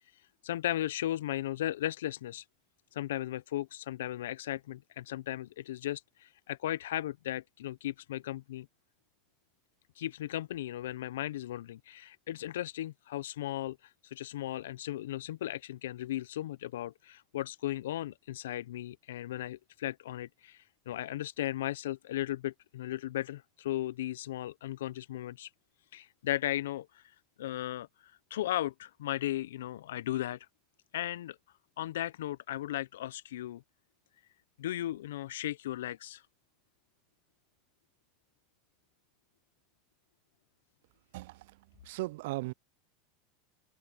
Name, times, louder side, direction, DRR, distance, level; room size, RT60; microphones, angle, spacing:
voice 1, 0.1-2.4 2.9-8.7 10.0-25.5 25.9-30.5 30.9-31.4 31.8-33.6 34.6-36.2, left 13 dB, 75° left, 0.6 m, -36 dB
voice 2, 41.1-41.6 41.8-42.5, right 21 dB, 70° right, 0.4 m, -37 dB
hypercardioid pair, 95°, 0 cm